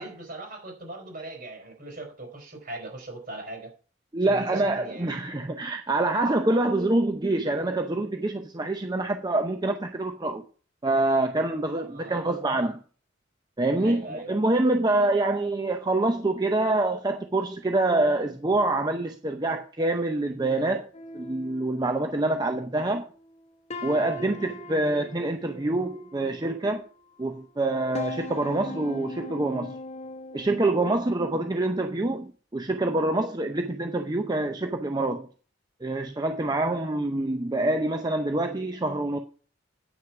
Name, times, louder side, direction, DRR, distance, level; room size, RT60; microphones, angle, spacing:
voice 1, 0.0-3.7 4.2-5.1 11.9-12.2 13.8-14.3 24.1-24.4, right 2 dB, 50° right, 4.4 m, -40 dB
voice 2, 4.1-10.4 10.8-12.8 13.6-20.9 21.1-23.1 23.8-26.8 27.2-29.8 30.3-35.3 35.8-39.2, right 2 dB, 20° right, 0.7 m, -26 dB
sound 1, 20.9-22.8 23.2-23.4 23.7-27.0 27.5-30.8, left 1 dB, 35° left, 0.9 m, -40 dB
9.1 x 6.4 x 5.8 m
head